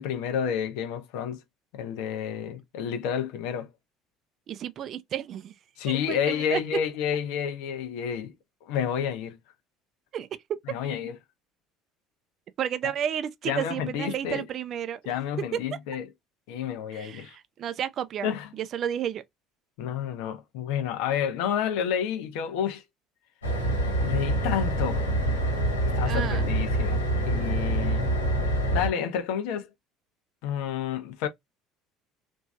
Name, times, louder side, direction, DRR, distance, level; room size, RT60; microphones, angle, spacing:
voice 1, 0.0-1.4 1.7-3.7 5.8-8.3 8.6-9.4 10.7-11.2 13.5-14.4 15.1-16.1 16.5-17.4 18.2-18.5 19.8-22.8 24.0-25.0 25.9-28.1 28.7-29.7 30.4-31.3, left 8 dB, 65° left, 0.6 m, -30 dB
voice 2, 4.5-5.6 5.9-6.6 10.1-10.3 12.6-15.0 15.5-15.6 16.9-18.3 18.5-19.2 26.1-26.5, right 9 dB, 45° right, 0.4 m, -32 dB
sound 1, 23.4-28.9, right 1 dB, 85° left, 1.4 m, -26 dB
3.1 x 2.6 x 2.3 m
figure-of-eight pair, 65°, 0 cm